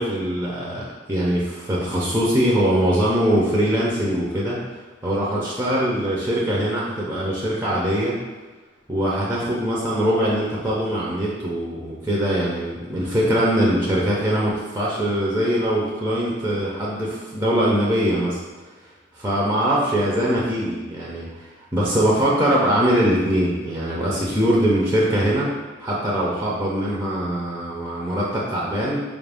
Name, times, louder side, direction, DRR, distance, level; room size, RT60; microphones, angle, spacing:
voice 1, 0.0-4.6 5.0-8.2 8.9-18.4 19.1-25.5 25.8-29.0, equal, 15° right, -5 dB, 0.6 m, -22 dB
4.5 x 2.5 x 3.4 m, 1.3 s
head